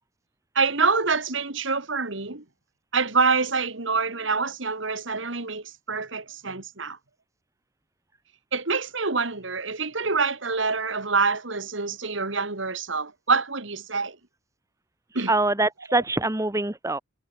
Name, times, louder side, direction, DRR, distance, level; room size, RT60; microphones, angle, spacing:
voice 1, 0.5-2.4 2.9-7.0 8.5-14.2 15.1-15.3 15.9-16.0, right 4 dB, 70° right, 2.4 m, -26 dB
voice 2, 15.3-17.0, right 2 dB, 15° right, 1.1 m, -24 dB
head